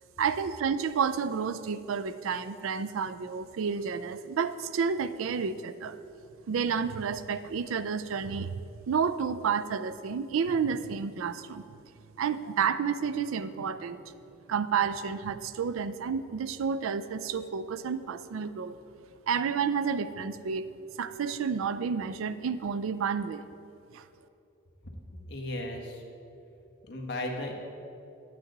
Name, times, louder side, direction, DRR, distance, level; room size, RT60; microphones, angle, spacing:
voice 1, 0.2-6.0 6.5-8.6 8.9-11.6 12.2-14.0 14.5-18.8 19.3-20.7 21.0-23.4 23.9-24.0, right 6 dB, 90° right, 13 dB, 0.4 m, -30 dB
voice 2, 24.8-26.0 26.9-27.5, left 1 dB, 55° left, 0 dB, 1.3 m, -36 dB
10.5 x 8.7 x 3.9 m, 2.8 s
head